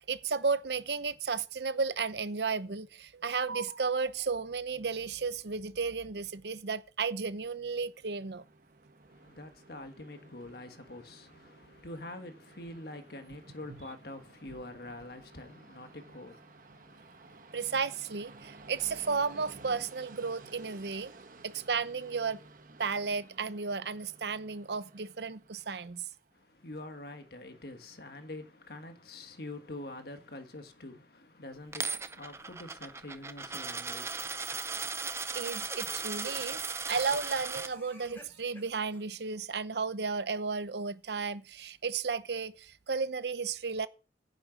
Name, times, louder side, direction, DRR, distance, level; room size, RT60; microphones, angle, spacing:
voice 1, 0.1-8.4 17.5-21.1 21.4-22.4 22.8-26.1 35.3-43.9, right 5 dB, 70° right, 0.8 m, -33 dB
Train, 7.7-26.3, right 3 dB, 50° right, 1.1 m, -55 dB
voice 2, 9.1-17.6 26.3-35.3, left 2 dB, 60° left, 1.5 m, -46 dB
Coin (dropping), 31.7-37.7, right 4 dB, 15° right, 0.5 m, -37 dB
sound 1, 34.0-34.5 34.8-34.9 35.6-39.0, equal, 15° left, 5.4 m, -53 dB
10.0 x 6.7 x 6.1 m
head